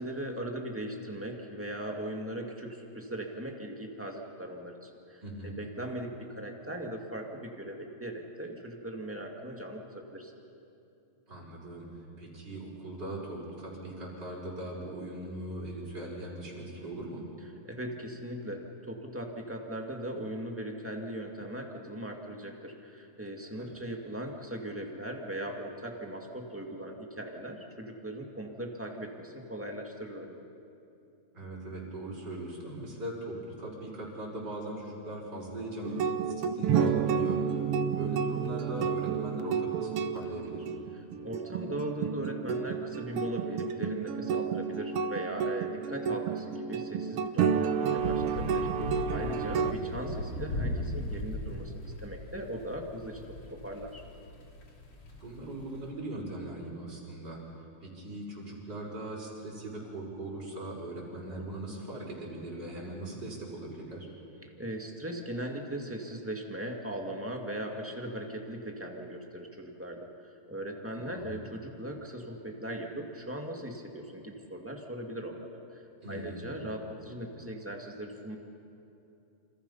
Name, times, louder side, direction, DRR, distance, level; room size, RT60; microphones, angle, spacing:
voice 1, 0.0-10.3 17.6-30.5 41.2-53.2 53.5-54.0 64.4-75.8 76.1-78.4, right 1 dB, 5° right, 1 dB, 1.6 m, -39 dB
voice 2, 5.2-5.6 11.3-11.9 12.2-17.2 23.5-23.7 31.3-36.0 36.3-37.4 37.9-40.7 49.5-50.0 55.2-57.4 57.8-64.1 70.9-71.4 76.0-76.5, right 1 dB, 35° right, -4 dB, 6.2 m, -40 dB
sound 1, 35.8-49.7, right 7 dB, 65° right, 1.5 m, -30 dB
sound 2, 48.0-55.9, left 1 dB, 50° left, 3.4 m, -38 dB
28.5 x 27.0 x 5.7 m, 2.7 s
omnidirectional pair, 3.3 m